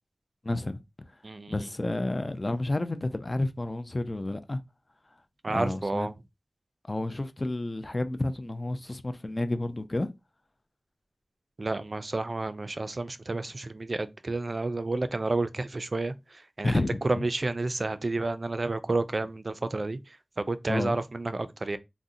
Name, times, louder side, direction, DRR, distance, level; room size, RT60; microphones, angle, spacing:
voice 1, 0.4-0.8 1.5-4.6 5.5-6.1 6.9-10.1 16.6-17.3 20.7-21.0, left 2 dB, 30° left, 0.4 m, -30 dB
voice 2, 1.2-1.7 5.4-6.1 11.6-21.8, right 2 dB, 45° right, 0.3 m, -31 dB
2.6 x 2.0 x 3.7 m
wide cardioid pair, 90°, 0 cm